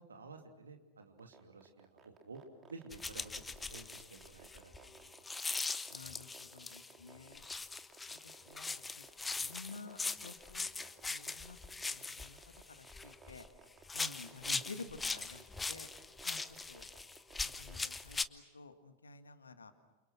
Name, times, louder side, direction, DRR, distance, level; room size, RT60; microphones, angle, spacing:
voice 1, 0.0-2.4 2.7-5.2 14.4-14.6, right 3 dB, 75° right, 4 dB, 2.8 m, -52 dB
sound 1, 1.2-18.1, right 6 dB, 25° right, 3.6 m, -57 dB
sound 2, 2.9-6.9 7.4-13.5 13.8-18.3, left 4 dB, 10° left, 0.8 m, -41 dB
voice 2, 5.9-7.5 8.1-8.2 8.5-9.0 9.4-10.7 11.1-11.6 11.9-12.4 12.8-13.5 13.9-15.9 16.2-16.4 16.7-16.9 17.4-19.7, left 4 dB, 75° left, 9 dB, 1.7 m, -52 dB
29.0 x 29.0 x 6.3 m, 1.1 s
figure-of-eight pair, 90°, 0 cm